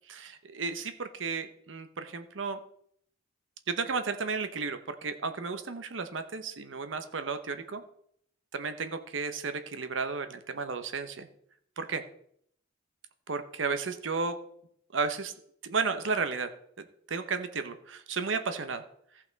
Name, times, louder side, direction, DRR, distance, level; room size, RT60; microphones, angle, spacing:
voice 1, 0.1-2.6 3.7-7.8 8.5-11.3 11.8-12.0 13.3-14.4 14.9-15.3 15.6-16.5 17.1-18.8, right 4 dB, 85° right, 9 dB, 0.9 m, -33 dB
15.0 x 5.7 x 4.0 m, 0.68 s
head